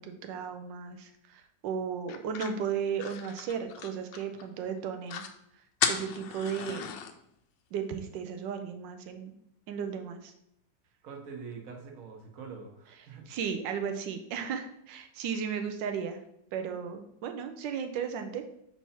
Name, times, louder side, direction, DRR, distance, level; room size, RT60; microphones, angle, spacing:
voice 1, 0.0-5.2 5.9-6.9 7.7-9.3 9.7-10.3 13.3-16.2 16.5-18.4, right 7 dB, 90° right, 6 dB, 1.3 m, -35 dB
sound 1, 2.1-4.5 4.8-4.9 5.1-5.3 5.8-7.1, left 8 dB, 90° left, 1.3 m, -35 dB
voice 2, 11.0-13.3, right 5 dB, 55° right, 2 dB, 1.4 m, -44 dB
4.5 x 4.3 x 5.6 m, 0.77 s
omnidirectional pair, 1.9 m